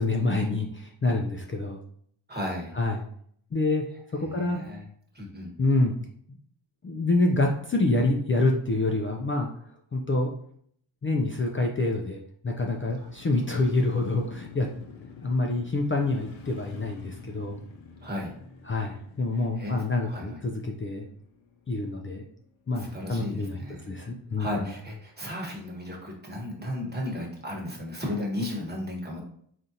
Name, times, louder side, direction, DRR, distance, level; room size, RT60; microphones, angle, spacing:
voice 1, 0.0-1.8 2.8-3.0 3.5-3.8 4.2-4.6 5.6-6.0 6.8-9.5 9.9-10.3 11.0-12.2 12.4-14.7 15.2-17.6 18.7-21.1 21.7-22.2 22.7-23.6 23.9-24.5, left 2 dB, 25° left, 1 dB, 0.4 m, -26 dB
voice 2, 2.3-2.8 4.2-4.9 5.1-5.5 13.0-13.1 18.0-18.3 19.3-20.4 22.7-23.9 24.4-29.2, left 1 dB, 20° right, -1 dB, 1.2 m, -35 dB
Motorcycle, 12.7-22.8 23.1-23.2, left 5 dB, 70° left, 0.6 m, -48 dB
3.6 x 2.6 x 2.7 m, 0.64 s
cardioid pair, 60°, 49 cm